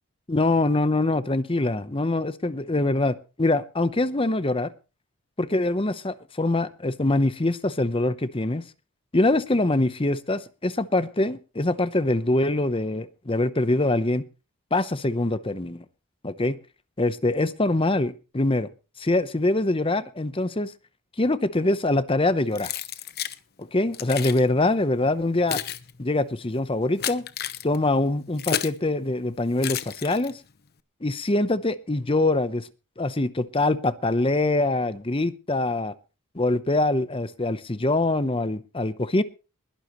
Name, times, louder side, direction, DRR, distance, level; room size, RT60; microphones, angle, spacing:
voice 1, 0.3-4.7 5.4-8.6 9.1-14.2 14.7-15.8 16.2-16.6 17.0-18.7 19.0-20.7 21.2-22.7 23.6-25.6 26.0-27.2 27.6-30.4 31.0-32.7 33.0-35.9 36.3-39.2, left 2 dB, 25° left, 0.8 m, -24 dB
Keys jangling, 22.5-23.4 23.9-24.4 25.1-28.8 29.6-30.5, left 9 dB, 45° left, 0.9 m, -32 dB
21.0 x 12.0 x 3.0 m
head